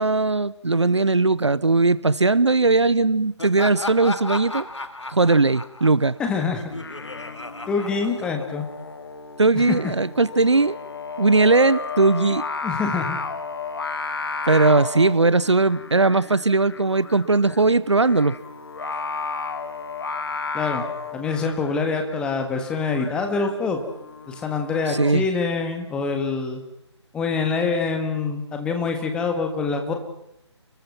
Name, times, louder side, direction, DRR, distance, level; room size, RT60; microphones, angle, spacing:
voice 1, 0.0-4.7 5.1-6.2 9.4-10.8 11.2-12.4 14.5-18.3 24.9-25.3, right 3 dB, 70° right, 20 dB, 0.9 m, -19 dB
Laughter, 3.4-8.8, left 2 dB, 75° left, 2.2 m, -34 dB
voice 2, 6.2-6.6 7.7-8.7 9.5-9.6 12.6-13.2 20.5-20.8 21.1-23.8 24.3-26.6 27.1-29.9, left 4 dB, 5° left, 4 dB, 1.7 m, -25 dB
Singing, 6.7-25.2, left 4 dB, 55° left, 1.8 m, -33 dB
30.0 x 21.5 x 5.9 m, 0.80 s
figure-of-eight pair, 150°, 15 cm